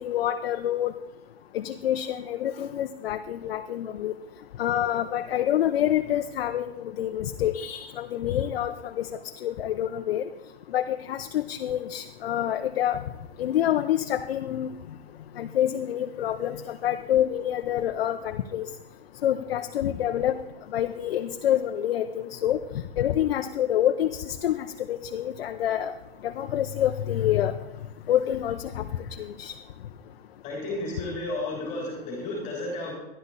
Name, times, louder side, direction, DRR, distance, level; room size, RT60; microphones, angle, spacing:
voice 1, 0.0-0.9 1.5-4.1 4.6-9.1 9.4-10.2 10.7-13.0 13.4-14.7 15.4-18.7 19.2-20.4 20.7-22.6 23.0-25.9 26.2-27.5 28.1-28.9 29.2-29.5, left 11 dB, 70° left, 6 dB, 0.8 m, -27 dB
voice 2, 30.4-32.9, left 2 dB, 25° left, -1 dB, 3.0 m, -32 dB
13.5 x 11.0 x 4.0 m, 0.98 s
hypercardioid pair, 150°, 30 cm